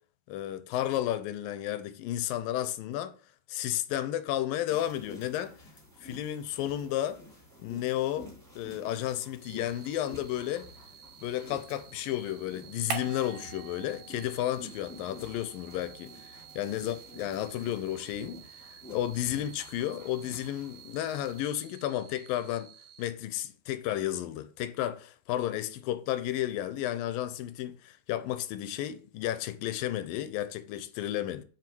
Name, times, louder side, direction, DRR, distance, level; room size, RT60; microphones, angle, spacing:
voice 1, 0.3-3.1 3.5-5.5 6.0-7.2 7.6-8.3 8.6-10.7 11.2-22.7 23.0-31.4, left 12 dB, 80° left, 2.5 m, -32 dB
sound 1, 4.7-21.4, left 1 dB, 5° left, 2.2 m, -51 dB
sound 2, 9.4-23.1, right 11 dB, 65° right, 2.3 m, -53 dB
sound 3, 12.9-14.6 14.9-17.3, right 7 dB, 85° right, 3.9 m, -43 dB
7.7 x 5.8 x 7.7 m
omnidirectional pair, 4.2 m